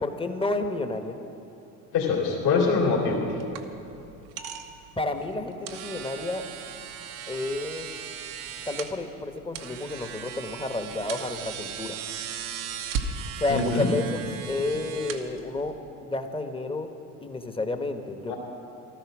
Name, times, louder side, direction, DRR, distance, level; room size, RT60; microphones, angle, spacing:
voice 1, 0.0-1.2 5.0-6.4 7.3-7.9 8.7-12.0 13.4-15.8 16.0-16.9 17.2-18.3, left 2 dB, 10° left, 7 dB, 1.2 m, -30 dB
voice 2, 1.9-3.2 13.5-13.9 18.3-18.4, left 4 dB, 55° left, -3 dB, 2.9 m, -24 dB
sound 1, 2.6-15.9, right 7 dB, 80° right, 1.2 m, -38 dB
15.0 x 12.5 x 6.1 m, 2.8 s
hypercardioid pair, 70°, 45 cm